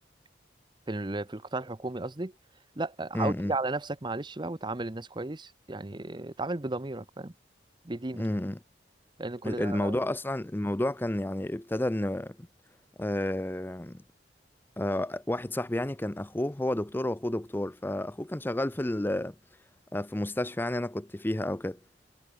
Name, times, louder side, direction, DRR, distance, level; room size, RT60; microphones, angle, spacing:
voice 1, 0.9-2.3 2.8-7.3 7.8-8.3 9.2-9.9, right 2 dB, 25° right, 0.8 m, -34 dB
voice 2, 3.1-3.5 8.2-8.6 9.4-12.5 13.0-14.0 14.8-19.3 19.9-21.8, left 1 dB, 10° left, 0.5 m, -31 dB
head